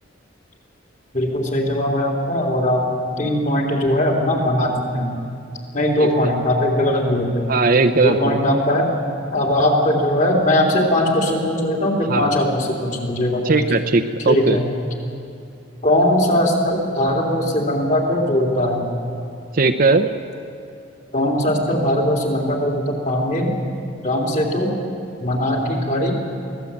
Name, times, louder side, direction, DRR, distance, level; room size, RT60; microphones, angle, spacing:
voice 1, 1.1-2.9 3.2-5.3 5.7-7.5 8.0-8.9 9.3-13.5 14.3-14.7 15.8-18.9 21.1-23.5 24.0-24.7 25.2-26.1, left 1 dB, 40° left, 0 dB, 3.6 m, -20 dB
voice 2, 6.0-6.3 7.5-8.4 12.1-12.4 13.4-14.6 19.5-20.1, right 3 dB, 50° right, 6 dB, 0.8 m, -18 dB
23.5 x 17.0 x 8.6 m, 2.6 s
head